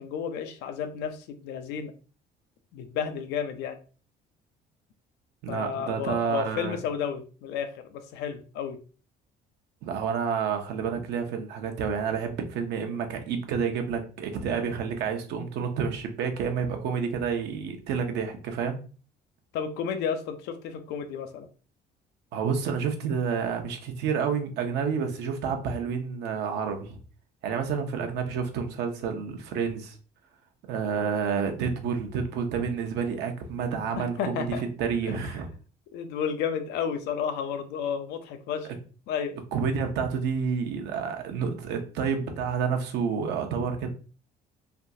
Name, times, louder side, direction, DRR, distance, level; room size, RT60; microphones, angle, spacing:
voice 1, 0.0-1.9 2.7-3.8 5.5-8.8 19.5-21.5 34.0-34.6 35.0-35.2 35.9-38.7 39.1-39.4, left 7 dB, 85° left, 8 dB, 0.5 m, -32 dB
voice 2, 5.4-6.8 9.8-18.8 22.3-27.0 27.4-30.0 30.7-35.5 38.6-38.7 39.5-43.9, right 6 dB, 80° right, 5 dB, 0.7 m, -29 dB
3.4 x 2.4 x 2.7 m, 0.37 s
cardioid pair, 110°, 17 cm